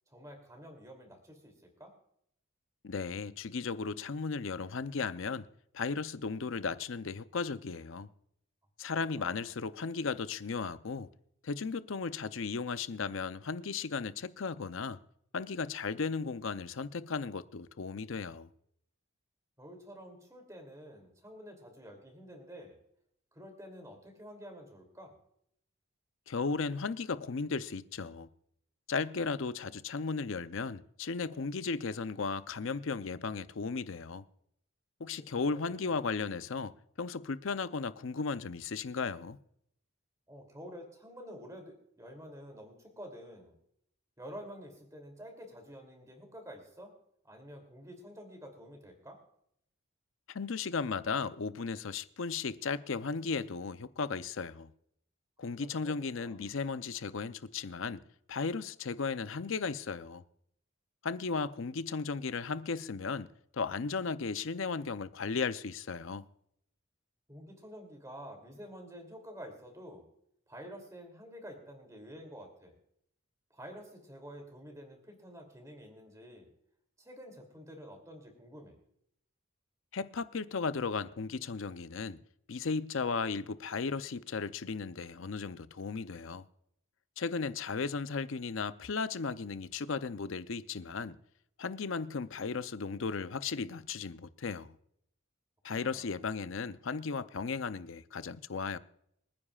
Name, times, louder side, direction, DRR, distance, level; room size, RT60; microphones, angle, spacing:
voice 1, 0.1-1.9 8.9-9.5 19.6-22.8 23.3-25.1 35.1-35.9 40.3-43.6 44.2-46.9 47.2-49.2 55.6-56.4 67.3-70.1 70.5-72.7 73.5-76.5 77.0-78.8 95.7-96.1, equal, 15° right, 2.8 m, -49 dB
voice 2, 2.8-5.5 5.7-8.1 8.8-11.1 11.4-15.0 15.3-18.5 26.3-28.3 28.9-34.2 35.0-39.4 50.3-54.7 55.4-58.0 58.3-60.2 61.0-66.3 79.9-82.2 82.5-86.5 87.2-91.2 91.6-94.8 95.6-98.8, left 4 dB, 65° left, 0.6 m, -35 dB
26.0 x 9.8 x 2.4 m
head